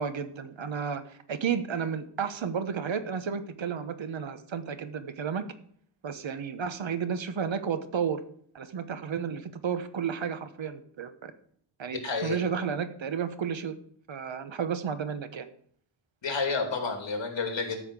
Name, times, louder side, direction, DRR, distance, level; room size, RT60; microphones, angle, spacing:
voice 1, 0.0-5.4 6.0-8.2 8.5-11.3 11.8-13.7 14.1-15.5, right 7 dB, 70° right, 11 dB, 1.1 m, -32 dB
voice 2, 11.9-12.4 16.2-17.8, left 4 dB, 65° left, 4 dB, 2.9 m, -30 dB
13.0 x 5.8 x 8.1 m, 0.62 s
wide cardioid pair, 150°, 48 cm